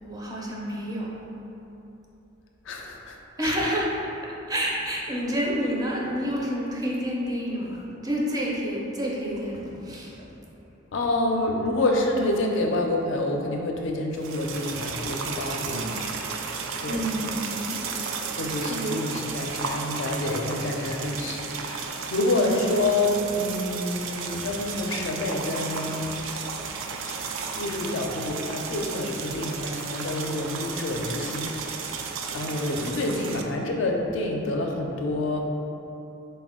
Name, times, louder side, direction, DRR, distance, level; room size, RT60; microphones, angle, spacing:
voice 1, 0.0-1.1 3.4-3.9 4.2-7.8 8.0-10.3 15.7-16.0 16.9-17.7 18.6-19.0 22.4-22.5, equal, 20° right, -4 dB, 0.5 m, -29 dB
voice 2, 2.6-3.6 10.9-15.8 16.8-17.0 18.3-26.1 27.6-31.8 32.3-35.4, left 2 dB, 70° left, 1 dB, 0.4 m, -28 dB
sound 1, 14.1-33.4, right 5 dB, 80° right, 0.3 m, -34 dB
4.1 x 2.2 x 3.5 m, 3.0 s
head